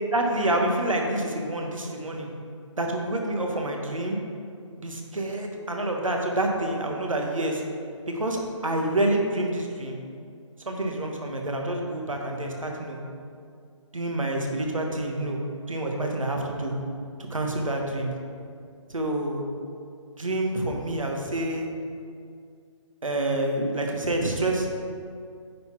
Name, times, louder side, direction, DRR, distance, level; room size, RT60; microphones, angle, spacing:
voice 1, 0.0-2.3 2.8-4.2 4.8-7.6 8.1-10.0 10.6-13.0 13.9-16.7 17.3-18.1 18.9-19.4 20.2-21.7 23.0-24.7, right 1 dB, 85° right, 1 dB, 1.3 m, -27 dB
9.3 x 4.1 x 4.6 m, 2.3 s
figure-of-eight pair, 145°, 17 cm